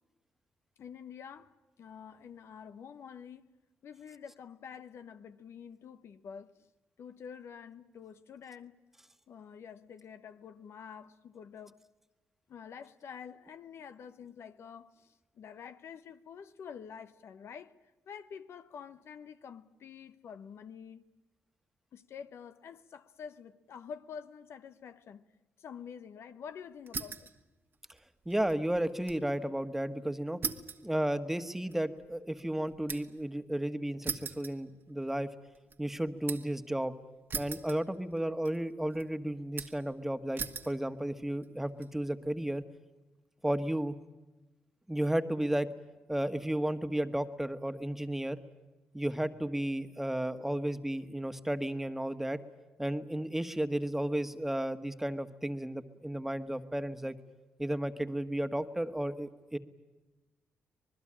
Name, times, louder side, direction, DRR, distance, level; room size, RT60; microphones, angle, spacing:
voice 1, 0.8-1.5 1.8-3.5 3.8-6.5 7.0-8.8 9.3-11.8 12.5-17.7 18.1-21.0 21.9-25.2 25.6-27.3, left 7 dB, 70° left, 1.0 m, -48 dB
sound 1, 26.9-27.4 27.7-29.3 29.6-29.7 30.4-33.3 34.0-35.2 35.5-36.6 37.3-38.2 38.4-39.0 39.6-39.9 40.4-40.8 41.4-41.9, right 5 dB, 50° right, 1.5 m, -40 dB
voice 2, 28.2-30.4 30.8-35.3 35.8-36.9 37.3-42.6 43.4-43.9 44.9-45.7 46.1-48.4 48.9-52.4 52.8-57.1 57.6-59.6, right 1 dB, 5° right, 1.5 m, -33 dB
25.5 x 20.5 x 8.8 m
cardioid pair, 80°, 5 cm